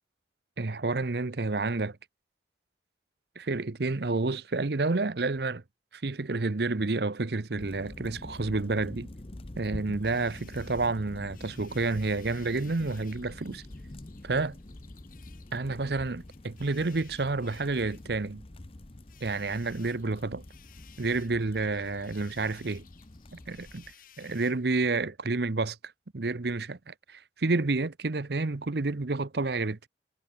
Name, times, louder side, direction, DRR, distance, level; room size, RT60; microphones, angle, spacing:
voice 1, 0.6-2.0 3.4-5.6 5.9-9.1 9.6-13.6 14.2-14.6 15.5-18.4 19.2-20.4 21.0-22.8 23.3-23.8 24.2-25.8 26.1-29.9, right 3 dB, 60° right, 0.8 m, -29 dB
sound 1, 7.6-23.9, left 1 dB, 30° left, 0.8 m, -46 dB
sound 2, 10.0-24.7, left 10 dB, 50° left, 5.2 m, -59 dB
head